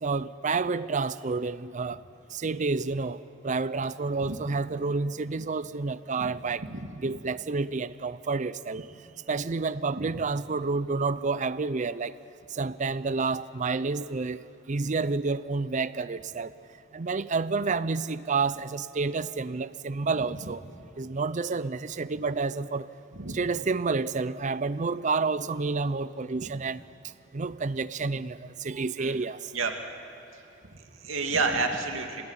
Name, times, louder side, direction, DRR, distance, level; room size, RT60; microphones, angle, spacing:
voice 1, 0.0-2.0 2.3-6.6 7.0-8.9 9.3-12.2 12.5-16.5 16.9-20.6 21.0-22.9 23.3-26.8 27.3-29.5, right 4 dB, 40° right, 0.5 m, -29 dB
voice 2, 30.7-32.2, right 4 dB, 85° right, 2.5 m, -30 dB
25.5 x 19.5 x 10.0 m
head